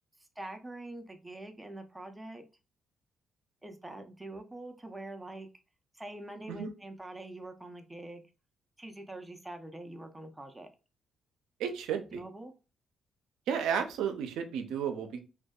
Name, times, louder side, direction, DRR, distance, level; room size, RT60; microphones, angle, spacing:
voice 1, 0.4-2.5 3.6-5.5 5.9-8.2 8.8-10.7 11.9-12.5, right 2 dB, 10° right, 4 dB, 0.5 m, -44 dB
voice 2, 11.6-12.2 13.5-15.2, right 7 dB, 85° right, 6 dB, 0.4 m, -33 dB
2.6 x 2.1 x 2.3 m, 0.31 s
cardioid pair, 90°, 0 cm